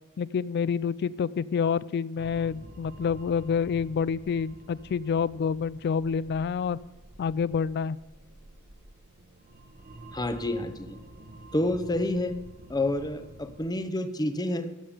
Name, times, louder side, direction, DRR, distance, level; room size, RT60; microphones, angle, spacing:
voice 1, 0.2-6.8 7.2-8.0, left 6 dB, 50° left, 20 dB, 0.3 m, -28 dB
sound 1, 2.2-13.7, right 1 dB, 45° right, 1.1 m, -49 dB
voice 2, 10.1-11.0 11.5-12.3 12.7-14.7, left 1 dB, 20° left, 9 dB, 0.8 m, -28 dB
13.0 x 8.5 x 5.0 m, 1.1 s
head